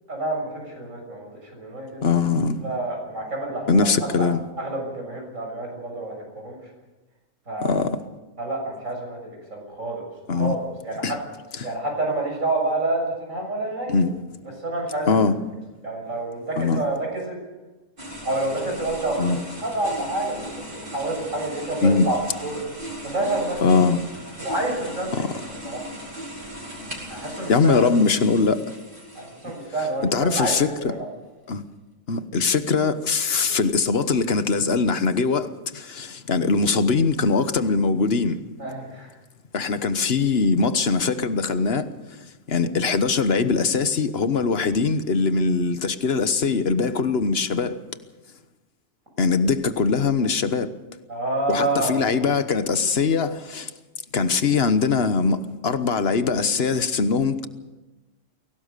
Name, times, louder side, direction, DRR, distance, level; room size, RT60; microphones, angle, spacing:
voice 1, 0.1-2.0 2.6-3.9 4.2-4.3 4.6-6.6 7.5-7.8 8.4-10.0 10.3-10.6 10.8-11.2 11.6-13.9 14.4-15.3 15.8-17.4 18.2-19.3 19.6-20.4 20.7-22.6 23.0-23.6 24.4-25.1 25.6-25.8 27.1-27.8 29.2-31.1 38.6-39.1 51.1-52.2, right 2 dB, 85° right, 7.1 m, -28 dB
voice 2, 2.0-2.6 3.7-4.4 7.6-8.0 10.3-10.6 11.0-11.2 11.6-11.7 13.9-14.2 15.1-15.3 16.6-16.8 19.2-19.4 21.8-22.1 23.6-24.0 25.1-25.3 27.5-28.6 30.1-30.7 31.5-31.6 32.1-38.4 39.5-42.2 42.5-47.8 49.2-50.7 51.5-53.7 54.1-57.5, left 4 dB, 55° left, 1.3 m, -21 dB
sound 1, 18.0-30.3, equal, 40° right, 4.9 m, -38 dB
22.5 x 18.0 x 6.8 m
omnidirectional pair, 1.3 m